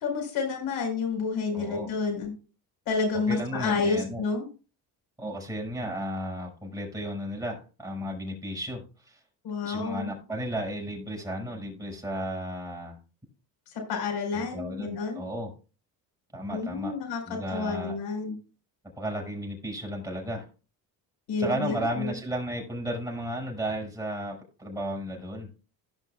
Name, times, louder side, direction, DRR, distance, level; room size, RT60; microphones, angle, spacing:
voice 1, 0.0-2.3 2.8-4.5 9.4-10.1 13.7-15.2 16.5-18.3 21.3-22.1, left 4 dB, 75° left, 2 dB, 4.9 m, -30 dB
voice 2, 1.5-1.9 3.3-4.2 5.2-9.2 9.6-13.0 14.3-15.5 16.3-16.9 17.3-18.0 19.0-20.5 21.4-25.5, equal, 10° right, 0 dB, 5.9 m, -34 dB
17.5 x 5.9 x 2.4 m, 0.34 s
cardioid pair, 105°, 40 cm